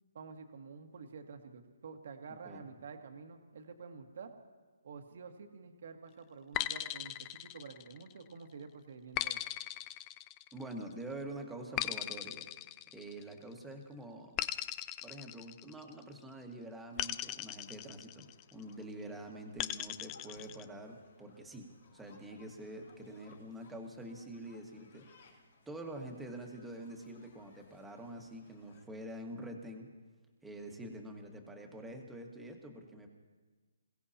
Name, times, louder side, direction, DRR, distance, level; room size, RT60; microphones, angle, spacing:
voice 1, 0.1-4.3 4.8-9.4, right 5 dB, 60° right, 5 dB, 1.6 m, -49 dB
sound 1, 6.5-8.2 9.2-10.8 11.8-13.5 14.4-16.1 17.0-18.5 19.6-20.6, left 14 dB, 20° left, 0.4 m, -39 dB
voice 2, 10.5-12.5 12.9-14.4 15.0-25.1 25.7-29.9 30.4-33.1, right 1 dB, 5° right, 1 dB, 1.6 m, -46 dB
sound 2, 16.9-28.8, left 4 dB, 65° left, 5.2 m, -65 dB
27.5 x 16.5 x 2.9 m, 1.3 s
hypercardioid pair, 150°, 0 cm